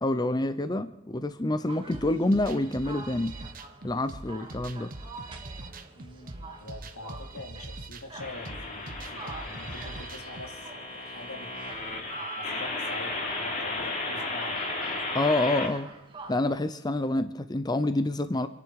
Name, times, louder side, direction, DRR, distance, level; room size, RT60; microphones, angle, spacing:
voice 1, 0.0-3.3 3.8-4.9 15.1-15.9 16.3-18.5, left 2 dB, 20° left, 11 dB, 0.6 m, -27 dB
sound 1, 1.7-16.6, right 3 dB, 25° right, 1.9 m, -47 dB
sound 2, 1.9-10.5, right 2 dB, 40° right, 1.1 m, -43 dB
voice 2, 6.0-11.5 12.2-14.7, left 2 dB, 85° left, 3 dB, 2.8 m, -45 dB
sound 3, 8.2-15.7, left 2 dB, 35° left, 3.0 m, -34 dB
27.0 x 11.0 x 4.8 m, 0.95 s
head